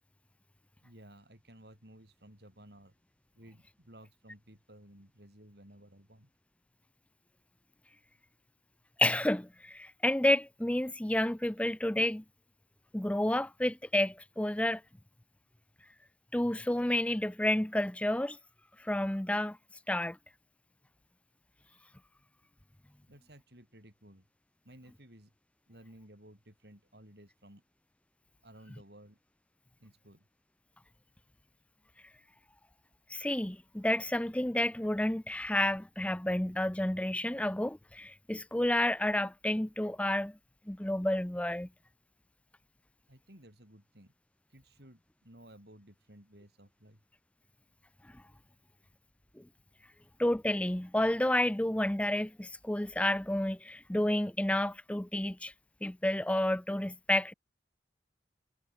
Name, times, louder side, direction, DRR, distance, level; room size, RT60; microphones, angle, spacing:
voice 1, 0.8-3.0 3.3-6.3 23.1-24.3 24.6-25.3 25.7-27.6 28.4-29.2 29.8-30.3 43.1-44.1 44.5-47.0, right 1 dB, 60° right, 7.5 m, -56 dB
voice 2, 9.0-12.2 12.9-14.8 16.3-18.4 18.8-19.6 19.9-20.2 33.1-40.4 40.7-41.7 48.1-48.2 49.4-49.5 50.2-55.5 55.8-57.3, left 1 dB, 5° left, 0.5 m, -30 dB
head